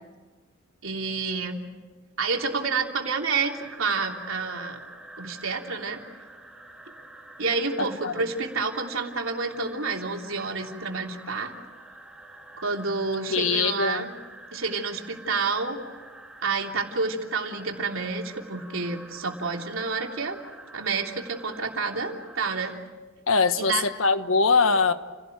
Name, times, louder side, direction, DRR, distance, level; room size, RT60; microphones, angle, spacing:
voice 1, 0.8-1.6 2.2-4.8 5.2-6.0 7.4-11.5 12.6-14.1 14.5-15.8 16.4-20.4 20.7-22.8 23.6-23.8, right 4 dB, 85° right, 1 dB, 3.2 m, -29 dB
sound 1, 3.3-22.8, right 1 dB, 5° right, 2.9 m, -47 dB
voice 2, 7.8-8.1 13.3-14.1 23.3-24.9, left 4 dB, 85° left, 10 dB, 1.3 m, -22 dB
29.5 x 17.5 x 9.2 m, 1.3 s
head